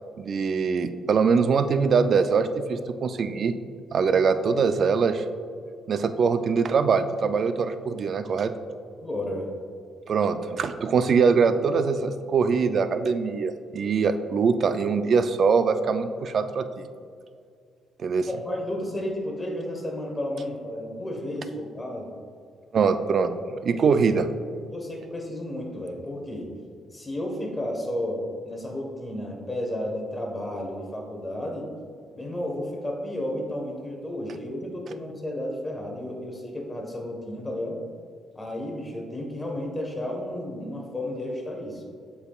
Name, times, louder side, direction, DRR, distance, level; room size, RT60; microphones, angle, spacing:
voice 1, 0.2-3.5 3.9-5.2 5.9-8.5 10.1-16.9 18.0-18.3 22.7-24.2, right 5 dB, 55° right, 10 dB, 0.4 m, -23 dB
voice 2, 9.0-9.5 18.3-22.1 23.8-24.0 24.7-26.5 26.9-31.7 32.1-37.8 38.3-41.8, left 1 dB, 15° left, 1 dB, 1.3 m, -32 dB
8.1 x 5.6 x 2.4 m, 2.3 s
cardioid pair, 90°, 0 cm